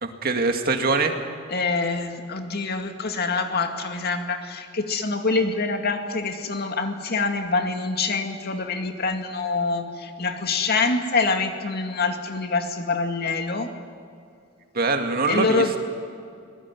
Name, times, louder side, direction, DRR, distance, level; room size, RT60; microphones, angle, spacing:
voice 1, 0.0-1.1 14.7-15.8, right 3 dB, 50° right, 5 dB, 2.1 m, -23 dB
voice 2, 1.5-13.7 15.3-15.8, left 3 dB, 55° left, 5 dB, 2.3 m, -25 dB
24.5 x 19.5 x 9.7 m, 2.4 s
head